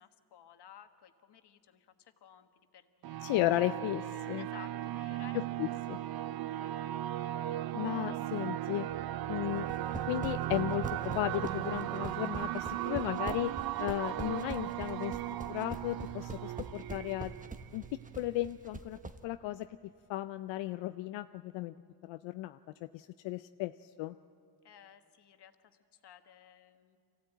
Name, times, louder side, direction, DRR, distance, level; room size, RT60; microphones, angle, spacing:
voice 1, 0.0-3.2 4.4-5.7 6.0-6.1 6.4-7.0 24.6-27.0, left 9 dB, 65° left, 8 dB, 1.5 m, -56 dB
sound 1, 3.0-18.4, right 13 dB, 55° right, 0.5 m, -37 dB
voice 2, 3.2-4.5 5.3-6.0 7.7-8.9 9.3-9.7 10.1-13.5 13.8-17.3 17.7-17.8 18.2-19.7 20.1-21.7 22.0-24.1, left 16 dB, 90° left, 10 dB, 0.5 m, -35 dB
sound 2, 9.6-19.2, right 2 dB, 20° right, 1.2 m, -43 dB
25.0 x 15.5 x 9.1 m, 2.4 s
cardioid pair, 90°, 44 cm